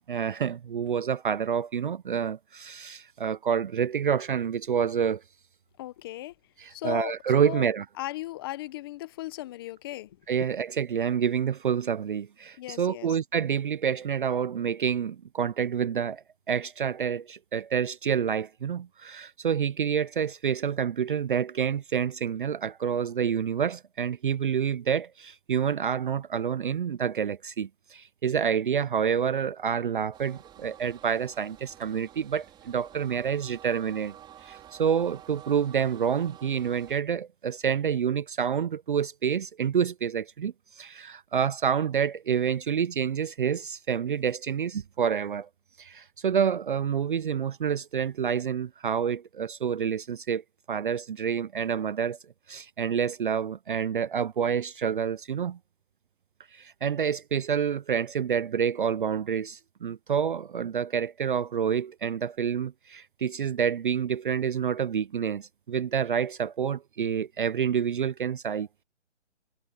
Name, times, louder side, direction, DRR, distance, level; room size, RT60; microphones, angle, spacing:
voice 1, 0.1-5.2 6.6-7.9 10.3-34.1 34.4-45.5 45.8-50.4 50.7-52.2 52.5-55.6 56.5-68.7, right 7 dB, 45° right, 0.6 m, -28 dB
voice 2, 5.8-6.3 6.7-7.1 7.4-7.7 8.0-10.2 12.6-13.1, left 16 dB, 20° left, 0.9 m, -36 dB
sound 1, 30.1-37.0, right 11 dB, 10° right, 4.3 m, -50 dB
hypercardioid pair, 155°, 37 cm